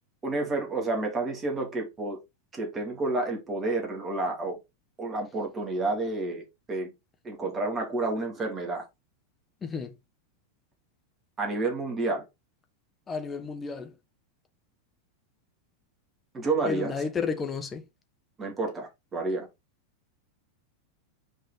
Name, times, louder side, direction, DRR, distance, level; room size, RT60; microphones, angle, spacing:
voice 1, 0.2-2.2 2.5-4.6 5.0-6.9 7.2-8.9 11.4-12.3 16.3-17.0 18.4-19.5, right 2 dB, 20° right, 2.9 m, -30 dB
voice 2, 9.6-9.9 13.1-13.9 16.7-17.8, left 5 dB, 20° left, 1.3 m, -32 dB
6.3 x 5.0 x 4.1 m
figure-of-eight pair, 90°, 0 cm